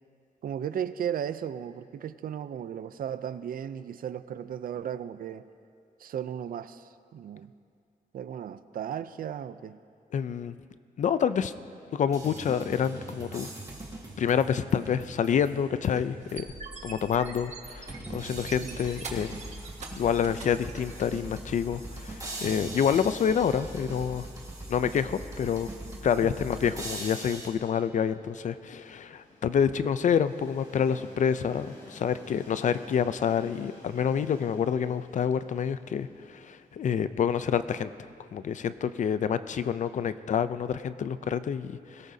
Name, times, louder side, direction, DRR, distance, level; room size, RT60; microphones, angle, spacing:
voice 1, 0.4-5.5 6.0-7.5 8.1-9.8 18.6-18.8 26.2-26.3, right 9 dB, 70° right, 13 dB, 0.5 m, -35 dB
voice 2, 10.1-10.5 11.0-11.5 11.9-13.5 14.2-16.5 16.8-19.4 19.9-24.3 24.7-25.7 26.0-37.9 38.3-42.1, left 7 dB, 55° left, 13 dB, 0.4 m, -28 dB
sound 1, 12.1-16.5 17.0-17.1 17.9-27.5, right 2 dB, 20° right, 1.7 m, -41 dB
sound 2, 16.2-21.2, right 4 dB, 50° right, 1.5 m, -43 dB
Train, 26.3-38.8, left 1 dB, 75° left, 3.9 m, -54 dB
21.5 x 17.5 x 2.7 m, 2.4 s
wide cardioid pair, 165°, 15 cm